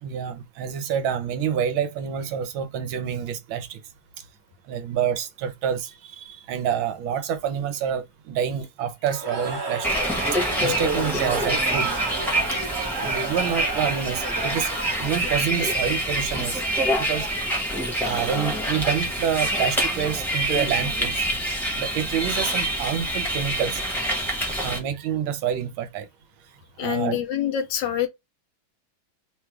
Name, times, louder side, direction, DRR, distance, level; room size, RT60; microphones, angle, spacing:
voice 1, 0.0-3.8 4.7-10.0 10.6-11.9 13.0-14.7 15.0-16.6 17.0-17.3 18.0-21.3 21.7-23.8 24.6-26.1 26.8-27.2, right 8 dB, 80° right, 1.5 m, -27 dB
Cheering / Crowd, 9.0-15.4, right 3 dB, 35° right, 0.8 m, -31 dB
Bus, 9.8-24.8, right 1 dB, ahead, 0.8 m, -26 dB
voice 2, 26.8-28.1, left 10 dB, 75° left, 1.2 m, -26 dB
3.8 x 2.3 x 4.5 m
omnidirectional pair, 2.2 m